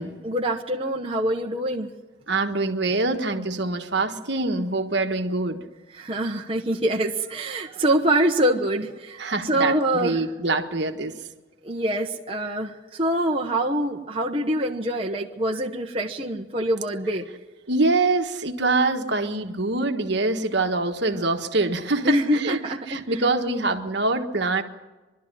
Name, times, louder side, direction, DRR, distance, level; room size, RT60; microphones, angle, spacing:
voice 1, 0.2-1.9 5.9-10.2 11.6-17.2 22.0-23.3, right 1 dB, 25° right, 0 dB, 1.1 m, -25 dB
voice 2, 2.3-5.6 9.2-11.1 17.7-22.6 22.9-24.6, right 3 dB, 55° right, 5 dB, 1.5 m, -24 dB
24.0 x 12.5 x 9.9 m, 1.2 s
head